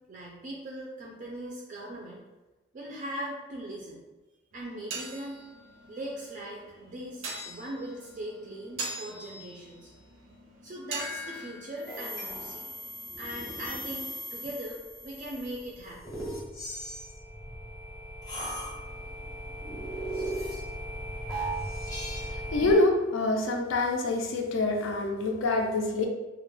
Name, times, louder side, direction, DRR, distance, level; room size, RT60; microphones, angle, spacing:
voice 1, 0.1-2.2 2.7-4.0 4.5-5.4 5.9-9.9 10.6-12.8 13.2-16.2, right 1 dB, 40° right, -3 dB, 0.3 m, -40 dB
sound 1, 4.5-13.1, right 3 dB, 90° right, 0.5 m, -43 dB
sound 2, 10.9-22.8, equal, 20° left, 0.6 m, -37 dB
voice 2, 22.3-26.1, left 2 dB, 75° left, 2 dB, 0.3 m, -26 dB
2.1 x 2.0 x 3.0 m, 1.1 s
head